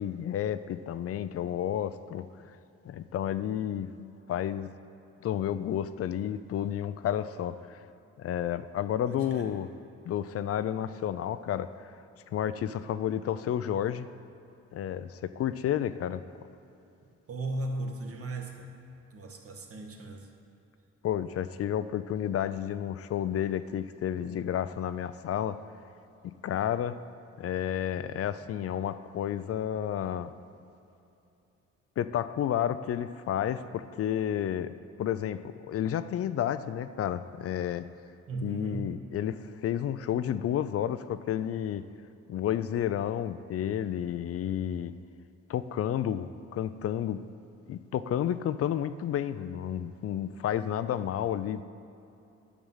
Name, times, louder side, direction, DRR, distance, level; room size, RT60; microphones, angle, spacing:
voice 1, 0.0-2.6 2.8-4.7 5.2-7.8 8.2-9.7 10.0-11.9 12.3-14.1 14.7-16.2 21.0-25.6 26.2-27.0 27.4-30.3 32.0-37.9 38.4-41.8 42.3-44.9 45.5-47.2 47.7-51.6, left 10 dB, 50° left, 13 dB, 0.4 m, -31 dB
voice 2, 9.1-9.6 17.3-18.7 19.1-20.3 38.3-39.0, right 2 dB, 50° right, 2 dB, 1.4 m, -37 dB
10.5 x 6.2 x 5.6 m, 2.8 s
cardioid pair, 90°, 30 cm